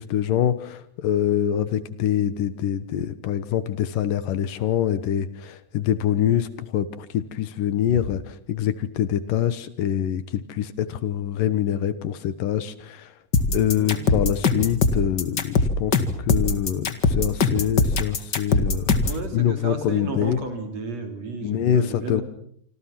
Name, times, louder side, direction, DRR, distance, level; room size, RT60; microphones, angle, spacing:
voice 1, 0.0-8.2 8.5-13.1 13.5-19.0 19.3-20.4 21.4-22.2, left 10 dB, 75° left, 13 dB, 2.8 m, -25 dB
sound 1, 13.3-19.2, left 4 dB, 40° left, 1.8 m, -21 dB
voice 2, 19.0-22.2, right 3 dB, 50° right, 6 dB, 4.5 m, -32 dB
27.0 x 26.0 x 6.0 m, 0.64 s
omnidirectional pair, 4.0 m